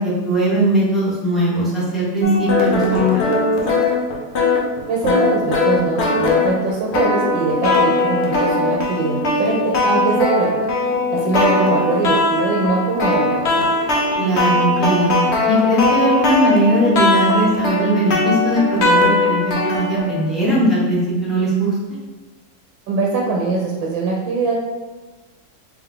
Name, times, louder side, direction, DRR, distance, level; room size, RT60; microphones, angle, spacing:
voice 1, 0.0-3.3 14.2-15.1 15.5-21.7, right 1 dB, ahead, -9 dB, 1.0 m, -19 dB
sound 1, 2.2-20.2, left 2 dB, 60° left, 0.7 m, -19 dB
voice 2, 4.9-10.6 11.1-13.7 22.9-24.6, right 3 dB, 85° right, -2 dB, 1.4 m, -22 dB
3.5 x 3.3 x 3.7 m, 1.3 s
omnidirectional pair, 2.0 m